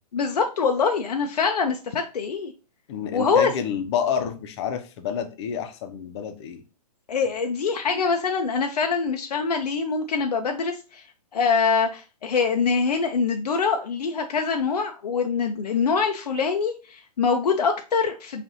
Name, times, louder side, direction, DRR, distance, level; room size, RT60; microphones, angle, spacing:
voice 1, 0.1-2.5 3.1-3.5 7.1-11.0 11.3-18.4, left 5 dB, 85° left, 4 dB, 0.5 m, -24 dB
voice 2, 2.9-6.6, left 8 dB, 45° left, 8 dB, 0.7 m, -29 dB
5.0 x 2.5 x 2.6 m, 0.33 s
hypercardioid pair, 130°, 20 cm